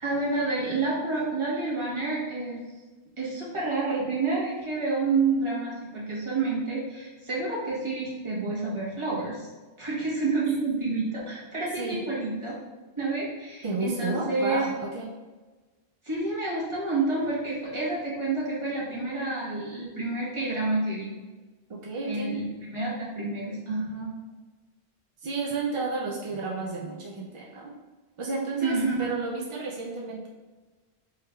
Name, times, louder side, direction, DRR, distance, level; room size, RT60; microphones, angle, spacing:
voice 1, 0.0-2.6 3.2-9.5 9.8-12.5 13.0-14.7 16.0-21.1 22.1-24.1 28.6-28.9, right 3 dB, 30° right, -7 dB, 1.1 m, -29 dB
voice 2, 13.6-15.1 21.7-22.4 25.2-27.7 28.2-30.3, right 3 dB, 55° right, -3 dB, 0.3 m, -32 dB
4.8 x 3.0 x 2.3 m, 1.3 s
omnidirectional pair, 1.1 m